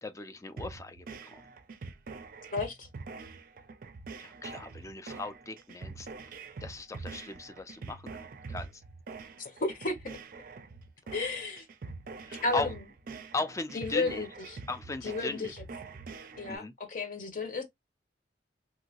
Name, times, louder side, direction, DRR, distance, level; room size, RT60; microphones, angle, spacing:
voice 1, 0.0-1.4 4.2-6.1 6.6-8.1 8.5-8.8 12.3-12.7 13.3-14.2 14.7-15.5 16.5-16.7, left 2 dB, 15° left, 0.4 m, -37 dB
sound 1, 0.6-16.6, right 4 dB, 50° right, 0.4 m, -45 dB
voice 2, 2.5-2.9 9.4-10.2 11.1-11.6 12.4-12.7 13.7-14.3 15.0-15.5 16.4-17.6, left 3 dB, 45° left, 0.8 m, -33 dB
3.0 x 2.7 x 2.8 m
head